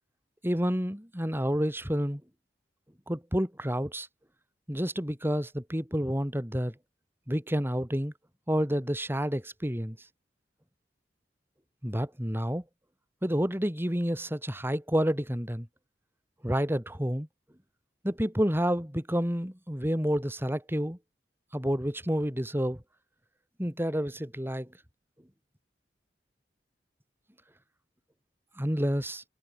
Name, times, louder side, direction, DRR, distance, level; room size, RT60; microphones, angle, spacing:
voice 1, 0.4-2.2 3.1-4.1 4.7-6.7 7.3-8.1 8.5-10.0 11.8-12.6 13.2-15.7 16.4-17.3 18.0-21.0 21.5-22.8 23.6-24.7 28.6-29.2, equal, 15° right, 5.1 m, -29 dB
head